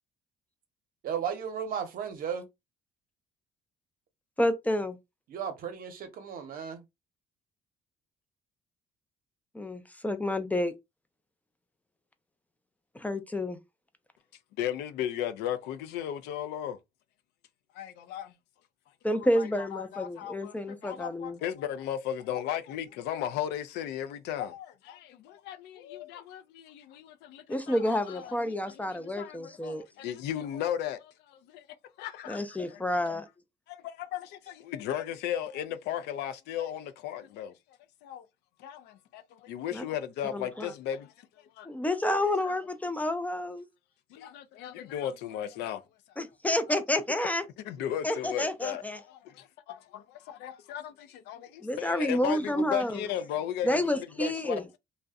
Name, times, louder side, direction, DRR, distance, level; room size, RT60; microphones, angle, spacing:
voice 1, 1.0-2.5 5.3-6.8, right 7 dB, 60° right, 0.7 m, -35 dB
voice 2, 4.4-5.0 9.5-10.7 12.9-13.6 19.0-21.4 27.5-29.8 32.3-33.3 39.7-39.8 40.3-40.7 41.6-43.7 46.2-47.4 48.0-49.0 51.6-53.1 53.6-54.6, left 1 dB, 10° left, 0.3 m, -29 dB
voice 3, 14.6-16.8 17.7-18.3 19.1-31.7 32.0-32.8 33.7-37.6 38.0-38.3 38.6-41.7 42.4-42.6 44.1-45.8 46.7-46.8 47.6-49.3 50.3-53.9 54.2-54.6, left 10 dB, 85° left, 0.4 m, -36 dB
2.6 x 2.0 x 2.3 m
cardioid pair, 110°, 17 cm